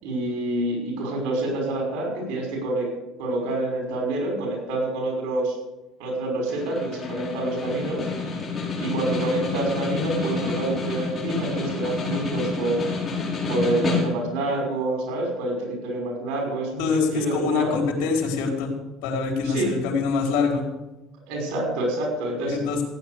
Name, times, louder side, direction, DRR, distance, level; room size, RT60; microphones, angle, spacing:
voice 1, 0.0-2.9 3.2-5.6 6.0-8.1 8.8-12.9 13.5-17.8 19.4-19.8 21.3-22.6, right 2 dB, 80° right, 1 dB, 5.8 m, -27 dB
Snare drum, 6.5-14.4, left 3 dB, 25° left, 5.6 m, -28 dB
voice 2, 16.8-18.7 19.0-20.6 22.5-22.8, left 5 dB, 80° left, 1 dB, 4.4 m, -25 dB
16.0 x 9.7 x 6.6 m, 1.0 s
cardioid pair, 130°, 0 cm